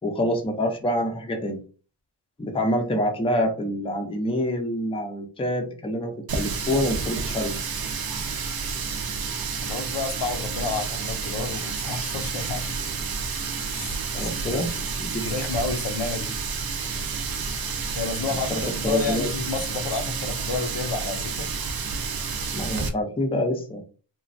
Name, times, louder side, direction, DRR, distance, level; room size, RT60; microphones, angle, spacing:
voice 1, 0.0-1.6 2.4-7.5 14.1-14.7 15.0-15.3 18.5-19.3 22.5-23.8, equal, 15° left, 0.4 m, -26 dB
Water tap faucet, 6.3-22.9, right 5 dB, 55° right, 0.5 m, -30 dB
voice 2, 9.6-12.7 13.7-14.8 15.2-16.3 18.0-21.5, left 4 dB, 75° left, 0.6 m, -30 dB
3.0 x 2.2 x 2.5 m
wide cardioid pair, 175°, 43 cm